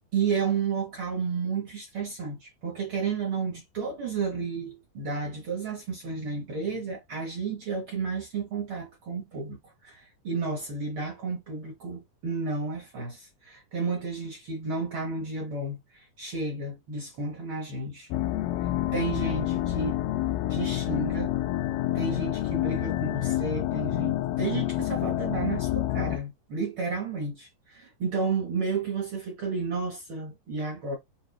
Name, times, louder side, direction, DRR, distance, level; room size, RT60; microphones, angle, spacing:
voice 1, 0.1-18.1 18.9-20.0 20.5-21.4 21.9-31.0, right 4 dB, 65° right, 1.3 m, -32 dB
sound 1, 18.1-26.2, left 14 dB, 90° left, 2.2 m, -28 dB
6.7 x 2.3 x 2.3 m
omnidirectional pair, 3.8 m